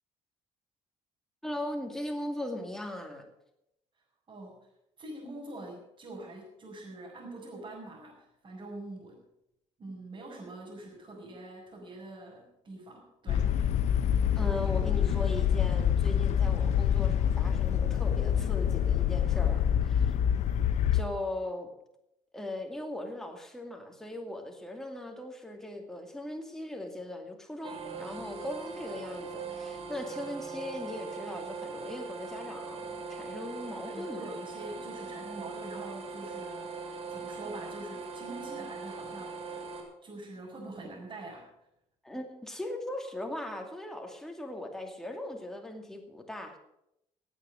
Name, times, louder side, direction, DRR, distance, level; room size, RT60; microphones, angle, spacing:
voice 1, 1.4-3.3 14.4-20.1 20.9-21.7 22.3-34.3 42.0-46.6, left 1 dB, 5° left, 2 dB, 2.5 m, -39 dB
voice 2, 4.3-4.6 5.0-9.2 9.8-13.5 33.8-39.7 40.0-41.5, right 2 dB, 40° right, -5 dB, 5.6 m, -44 dB
sound 1, 13.3-21.0, left 9 dB, 70° left, 0.9 m, -26 dB
sound 2, 27.6-39.8, right 4 dB, 55° right, 3.4 m, -40 dB
17.5 x 8.5 x 6.4 m, 0.83 s
cardioid pair, 100°, 12 cm